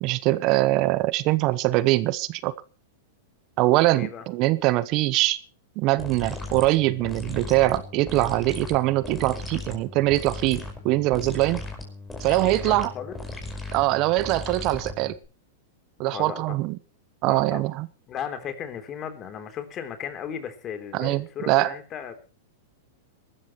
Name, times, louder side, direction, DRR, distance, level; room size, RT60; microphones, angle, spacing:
voice 1, 0.0-2.5 3.6-5.4 5.8-11.6 12.2-12.9 13.7-15.2 16.0-16.8 17.2-17.9 20.9-21.7, right 18 dB, 45° right, 1.0 m, -23 dB
voice 2, 3.9-4.2 12.3-13.1 16.0-16.6 17.3-17.6 18.1-22.1, left 8 dB, 35° left, 3.5 m, -36 dB
sound 1, 6.0-15.3, left 2 dB, 10° left, 5.3 m, -37 dB
23.0 x 13.0 x 3.2 m
hypercardioid pair, 110°, 0 cm